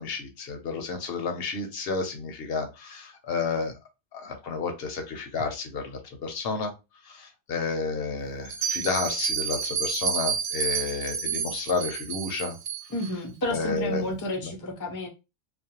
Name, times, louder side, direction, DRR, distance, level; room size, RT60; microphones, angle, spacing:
voice 1, 0.0-3.7 4.1-6.7 7.0-12.6 13.5-14.1 14.4-14.5, left 4 dB, 65° left, 0.8 m, -31 dB
Bell, 8.5-13.1, right 6 dB, 85° right, 0.9 m, -30 dB
voice 2, 12.9-15.1, left 1 dB, 30° left, 0.3 m, -31 dB
2.4 x 2.1 x 2.7 m
omnidirectional pair, 1.2 m